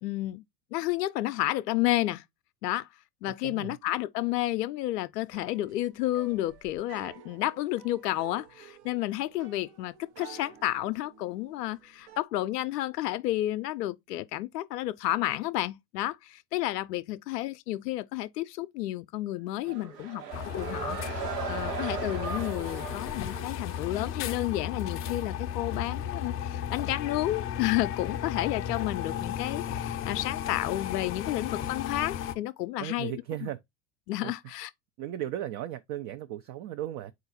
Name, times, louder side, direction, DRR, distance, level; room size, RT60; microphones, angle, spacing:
voice 1, 0.0-0.4 0.7-2.2 2.6-2.9 3.2-33.1 34.1-34.7, left 15 dB, 80° left, 0.6 m, -31 dB
voice 2, 3.4-3.8 32.8-33.6 34.2-34.5 35.0-37.1, right 12 dB, 40° right, 0.5 m, -36 dB
sound 1, 5.3-12.2, right 8 dB, 60° right, 1.0 m, -52 dB
sound 2, 19.6-24.1, right 6 dB, 80° right, 1.2 m, -37 dB
sound 3, 20.3-32.4, left 9 dB, 30° left, 0.5 m, -34 dB
4.0 x 2.5 x 4.0 m
hypercardioid pair, 95°, 48 cm